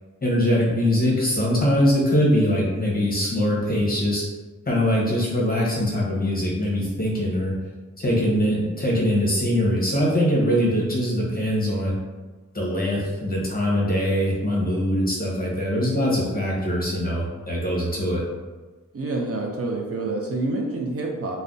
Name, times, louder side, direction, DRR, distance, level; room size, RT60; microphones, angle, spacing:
voice 1, 0.2-4.2 4.7-7.5 8.0-11.9 12.5-18.2, equal, 30° left, -4 dB, 0.8 m, -22 dB
voice 2, 18.9-21.4, right 2 dB, 50° right, -1 dB, 0.4 m, -28 dB
2.5 x 2.1 x 3.6 m, 1.3 s
wide cardioid pair, 130°, 31 cm